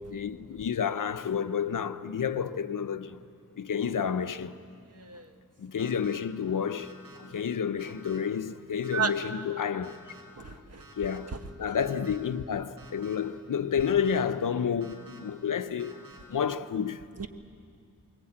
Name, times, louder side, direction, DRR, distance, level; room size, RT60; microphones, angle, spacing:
voice 1, 0.0-3.2 3.6-4.6 5.6-10.0 10.4-10.5 11.0-16.0 16.3-17.0, left 7 dB, 65° left, 0.8 m, -30 dB
sound 1, 5.8-6.2 6.8-7.2 7.8-8.2 8.8-9.2 9.8-10.2 10.8-11.2 11.8-12.2 12.8-13.2 13.8-14.2 14.8-15.2 15.8-16.2, right 3 dB, 90° right, 5.1 m, -51 dB
voice 2, 10.4-10.8 17.2-17.3, right 6 dB, 45° right, 1.5 m, -32 dB
24.0 x 21.5 x 8.7 m
wide cardioid pair, 90°, 34 cm